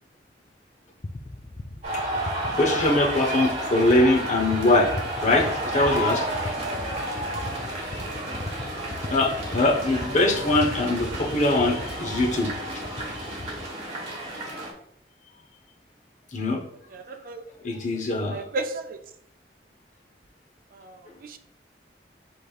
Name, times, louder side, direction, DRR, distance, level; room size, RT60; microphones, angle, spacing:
sound 1, 1.0-13.7, left 2 dB, 25° left, 0.4 m, -38 dB
sound 2, 1.8-14.7, right 1 dB, 40° right, 1.2 m, -31 dB
voice 1, 2.5-4.9 5.2-6.3 9.1-12.5 16.3-16.6 17.6-18.5, left 2 dB, 45° left, 2 dB, 0.7 m, -22 dB
voice 2, 7.7-8.2 16.9-17.4 18.3-19.0 20.7-21.4, right 2 dB, 55° right, 7 dB, 0.4 m, -35 dB
5.0 x 4.3 x 2.3 m, 0.68 s
head